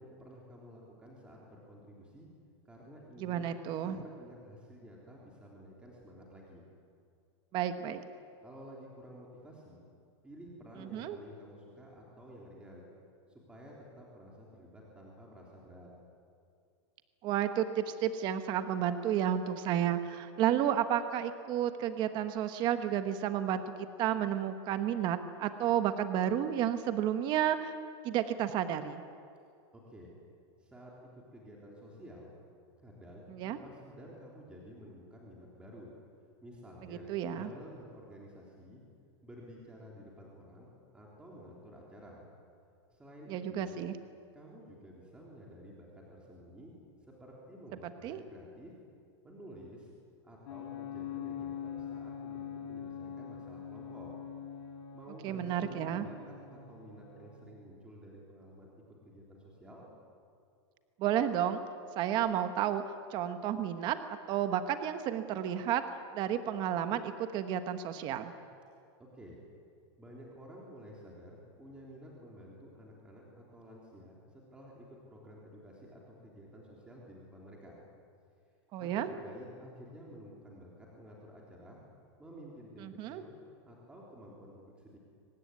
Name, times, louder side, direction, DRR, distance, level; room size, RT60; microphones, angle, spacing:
voice 1, 0.0-2.3 2.7-3.5 3.8-6.6 8.4-9.8 10.2-12.9 13.3-15.9 29.7-30.1 30.6-32.3 32.8-35.9 36.4-38.8 39.2-42.2 42.9-43.8 44.3-46.7 47.0-48.7 49.2-49.9 50.2-54.1 54.9-59.9 69.0-69.4 70.0-77.8 78.8-81.8 82.2-83.3 83.6-85.0, equal, 5° right, -3 dB, 3.6 m, -52 dB
voice 2, 3.2-4.0 7.5-8.0 10.9-11.2 17.2-27.7 28.0-29.0 33.3-33.6 37.1-37.5 43.3-43.9 48.0-48.2 55.2-56.1 61.0-61.6 62.0-62.8 63.1-65.8 66.1-68.3 78.7-79.1 82.8-83.2, right 10 dB, 30° right, 9 dB, 1.3 m, -31 dB
sound 1, 50.5-57.5, left 8 dB, 65° left, 3.5 m, -43 dB
24.5 x 19.5 x 9.7 m, 2.4 s
supercardioid pair, 165°, 15 cm